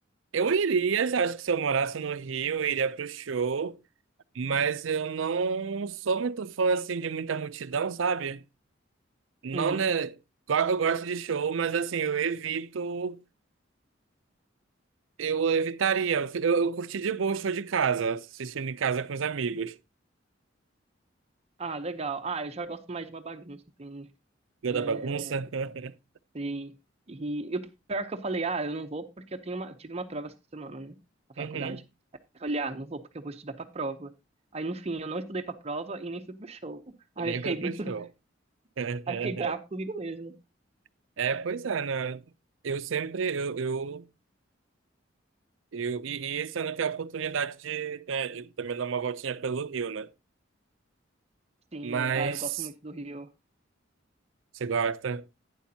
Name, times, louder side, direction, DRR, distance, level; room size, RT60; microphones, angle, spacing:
voice 1, 0.3-3.8 4.4-8.4 9.4-10.1 10.5-13.2 15.2-19.8 24.6-25.9 31.4-31.8 37.2-38.1 38.8-39.5 41.2-42.2 42.6-44.1 45.7-50.1 51.8-52.7 54.5-55.2, right 6 dB, 85° right, 0.5 m, -29 dB
voice 2, 9.5-9.8 21.6-24.1 24.7-25.4 26.3-26.7 27.1-31.0 31.4-31.8 32.3-34.1 34.5-37.9 39.1-40.3 51.7-53.3, right 3 dB, 35° right, 0.7 m, -35 dB
11.5 x 9.6 x 2.8 m
head